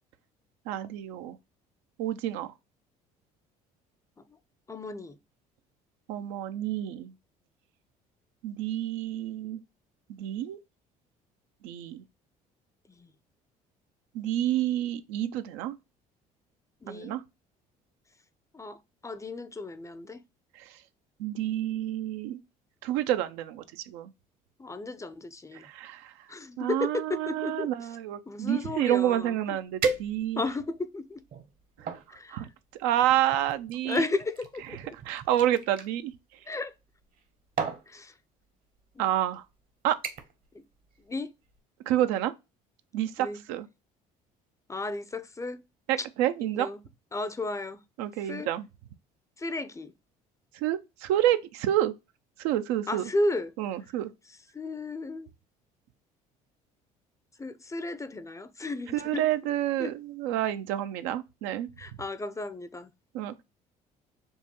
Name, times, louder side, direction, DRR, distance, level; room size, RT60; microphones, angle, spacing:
voice 1, 0.7-1.4 2.0-2.5 6.1-7.1 8.4-9.6 10.2-10.6 11.6-12.0 14.1-15.8 16.9-17.2 20.6-20.7 21.2-22.4 22.8-24.1 25.5-26.1 26.6-30.4 32.3-32.5 32.8-34.0 35.1-36.1 39.0-39.4 39.8-40.0 41.9-42.3 42.9-43.7 45.9-46.7 48.0-48.7 50.6-51.9 52.4-53.0 53.6-54.1 58.9-61.7 63.1-63.4, right 12 dB, 80° right, 0.4 m, -29 dB
voice 2, 4.7-5.2 12.9-13.1 16.8-17.2 18.5-20.2 24.6-25.6 26.3-27.9 28.3-29.6 30.4-31.2 32.1-32.4 33.8-34.9 36.5-36.7 37.9-38.1 40.5-40.7 41.1-41.3 43.2-43.4 44.7-45.6 46.0-46.1 46.4-46.8 47.1-47.8 48.2-48.5 49.4-49.9 52.9-53.5 54.5-55.3 57.4-59.2 59.8-60.0 61.8-62.9, left 2 dB, 15° left, 0.5 m, -34 dB
sound 1, 29.2-29.3 29.8-30.6 31.2-32.1 33.0-35.9 37.0-37.2 37.6-37.9 38.8-38.9 39.3-39.6 40.0-40.4 40.8-41.1 41.5-41.6, right 5 dB, 50° right, 0.9 m, -35 dB
5.2 x 2.2 x 2.9 m
supercardioid pair, 70°, 19 cm